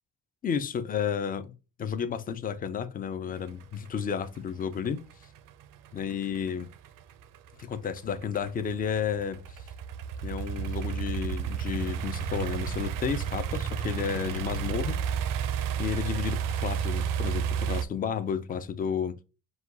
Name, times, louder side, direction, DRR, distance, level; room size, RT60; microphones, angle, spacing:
voice 1, 0.4-1.5 1.8-5.0 5.9-6.7 7.6-9.7 10.2-15.0 15.8-19.2, left 7 dB, 25° left, 0.3 m, -32 dB
sound 1, 3.4-17.8, right 7 dB, 65° right, 0.5 m, -32 dB
4.8 x 2.3 x 3.8 m
cardioid pair, 155°, 35 cm